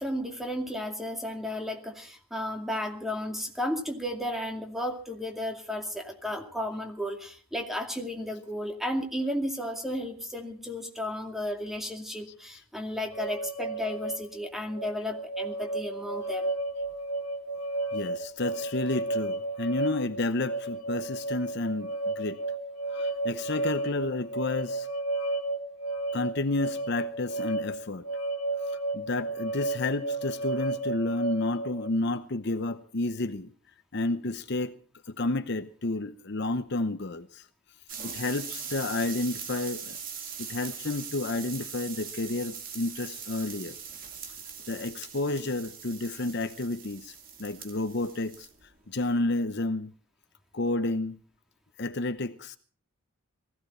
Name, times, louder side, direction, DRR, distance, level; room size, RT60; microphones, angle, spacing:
voice 1, 0.0-16.5, left 1 dB, ahead, 2.3 m, -33 dB
sound 1, 13.1-31.9, right 2 dB, 80° left, 1.7 m, -33 dB
voice 2, 17.9-22.4 22.9-24.9 26.1-28.1 28.9-33.5 33.9-34.8 35.1-37.4 38.0-40.0 40.4-43.8 44.7-48.5 48.9-49.9 50.5-51.2 51.8-52.6, left 2 dB, 55° left, 0.8 m, -31 dB
sound 2, 37.9-48.7 49.0-49.3, right 7 dB, 40° right, 2.6 m, -41 dB
19.5 x 15.5 x 4.3 m
head